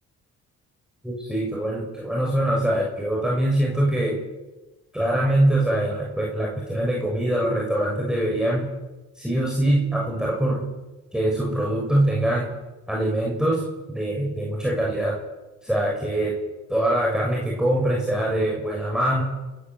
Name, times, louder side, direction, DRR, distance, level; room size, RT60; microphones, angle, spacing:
voice 1, 1.0-4.2 4.9-8.7 9.2-10.6 11.1-12.5 12.9-15.2 15.6-16.4 16.7-19.2, right 1 dB, ahead, -3 dB, 7.0 m, -23 dB
29.0 x 13.5 x 8.4 m, 1.2 s
cardioid pair, 90°, 30 cm